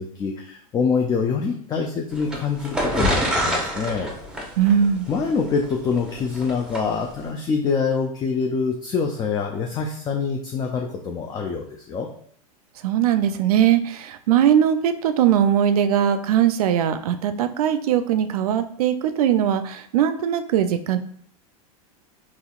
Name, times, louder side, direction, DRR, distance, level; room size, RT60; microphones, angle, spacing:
voice 1, 0.0-4.1 5.1-12.1, left 5 dB, 20° left, 2 dB, 0.4 m, -25 dB
sound 1, 2.1-6.8, equal, 5° right, 0.8 m, -26 dB
voice 2, 4.6-5.1 12.8-21.0, right 9 dB, 75° right, 10 dB, 0.4 m, -20 dB
4.0 x 2.9 x 2.4 m, 0.63 s
hypercardioid pair, 115°, 19 cm